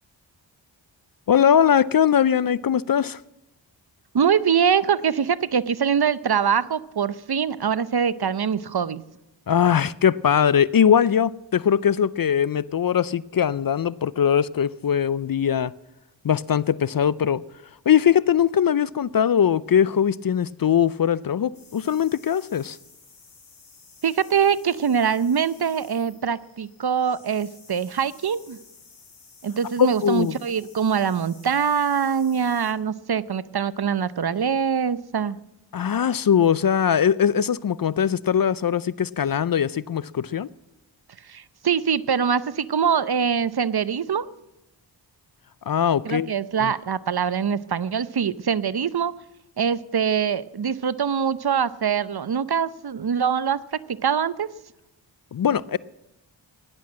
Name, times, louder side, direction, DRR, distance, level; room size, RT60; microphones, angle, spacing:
voice 1, 1.3-3.2 9.5-15.7 16.2-17.4 17.9-22.8 29.8-30.3 35.7-40.5 45.7-46.3 46.6-46.7 55.3-55.8, left 8 dB, 50° left, 0.5 m, -21 dB
voice 2, 4.1-9.0 24.0-28.6 29.4-35.4 41.3-44.3 46.0-49.1 49.6-54.5, right 7 dB, 55° right, 0.8 m, -23 dB
sound 1, 21.5-32.7, left 5 dB, 85° left, 3.3 m, -52 dB
16.0 x 10.5 x 7.5 m
cardioid pair, 45°, 47 cm